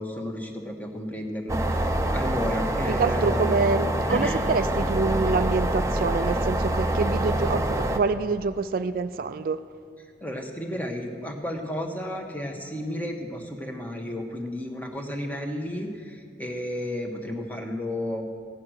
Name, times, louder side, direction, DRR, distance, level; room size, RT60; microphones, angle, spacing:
voice 1, 0.0-3.6 4.1-4.4 10.2-18.2, left 1 dB, 10° left, 2 dB, 1.2 m, -33 dB
sound 1, 1.5-8.0, right 1 dB, 15° right, 0.7 m, -25 dB
voice 2, 2.9-9.6, right 4 dB, 50° right, 12 dB, 0.3 m, -26 dB
16.0 x 9.7 x 6.3 m, 2.1 s
head